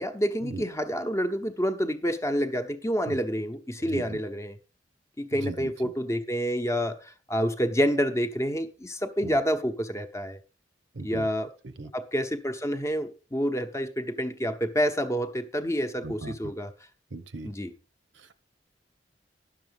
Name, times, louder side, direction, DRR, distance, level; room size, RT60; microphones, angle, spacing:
voice 1, 0.0-4.6 5.2-10.4 11.0-11.5 11.9-16.7 17.4-17.7, equal, 15° left, 0.9 m, -28 dB
voice 2, 10.9-11.2 11.6-11.9 16.0-16.5 17.1-17.5, right 3 dB, 85° right, 0.9 m, -37 dB
10.5 x 6.8 x 5.3 m
head